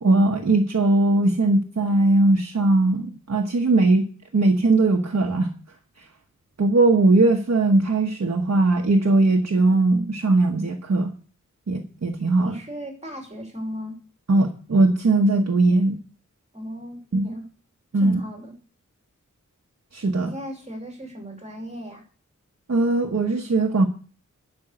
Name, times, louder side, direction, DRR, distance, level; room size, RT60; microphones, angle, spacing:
voice 1, 0.0-4.1 4.3-5.5 6.6-11.1 11.7-12.5 14.3-16.0 17.1-17.3 17.9-18.2 19.9-20.3 22.7-23.9, right 2 dB, 55° right, 2 dB, 1.1 m, -19 dB
voice 2, 12.4-14.0 16.5-17.4 17.9-18.5 20.2-22.0, equal, 20° right, 1 dB, 2.8 m, -36 dB
11.5 x 5.4 x 7.8 m, 0.40 s
wide cardioid pair, 85°, 31 cm